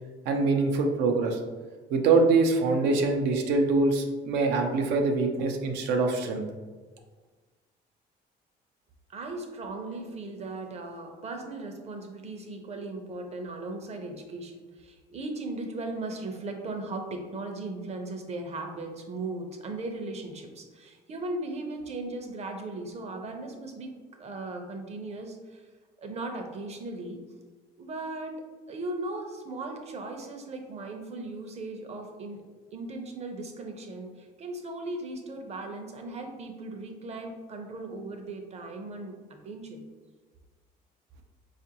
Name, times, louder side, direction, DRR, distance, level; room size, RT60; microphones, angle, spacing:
voice 1, 0.3-1.4 1.9-6.4, right 3 dB, 90° right, 3 dB, 0.5 m, -24 dB
voice 2, 9.1-25.7 26.0-27.2 27.8-39.8, right 2 dB, 40° right, 4 dB, 0.6 m, -37 dB
4.4 x 2.5 x 2.8 m, 1.4 s
cardioid pair, 110°, 17 cm